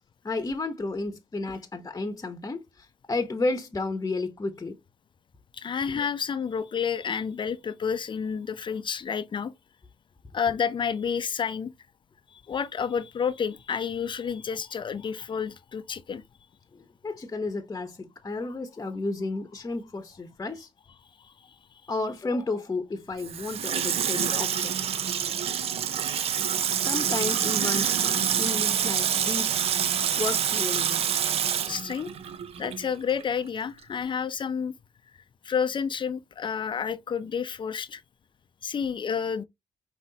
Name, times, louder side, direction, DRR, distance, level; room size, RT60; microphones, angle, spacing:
voice 1, 0.2-4.8 5.9-6.0 16.7-20.7 21.9-24.8 26.8-29.6 30.1-31.1, left 3 dB, 30° left, 0.9 m, -32 dB
voice 2, 5.5-9.5 10.3-11.7 12.3-16.2 21.2-21.3 31.7-32.1 32.6-34.7 35.4-38.0 38.6-39.4, left 7 dB, 50° left, 0.5 m, -30 dB
Water tap faucet / Sink (filling or washing), 23.2-32.9 33.2-33.3, right 8 dB, 70° right, 0.6 m, -27 dB
5.3 x 3.0 x 2.8 m
supercardioid pair, 55°, 11 cm